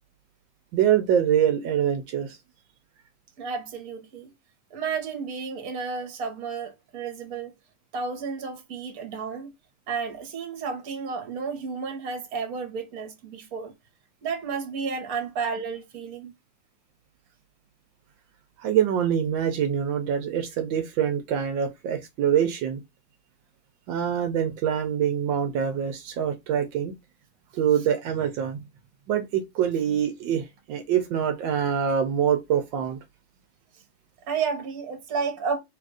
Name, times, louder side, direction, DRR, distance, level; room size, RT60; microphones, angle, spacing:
voice 1, 0.7-2.4 18.6-22.8 23.9-26.9 27.5-28.6 29.1-33.0, right 9 dB, 80° right, 1.4 m, -25 dB
voice 2, 3.4-4.3 4.7-7.5 7.9-9.5 9.9-13.7 14.2-16.3 33.7-33.8 34.3-35.6, right 5 dB, 55° right, 1.5 m, -32 dB
4.0 x 2.5 x 4.7 m
omnidirectional pair, 2.1 m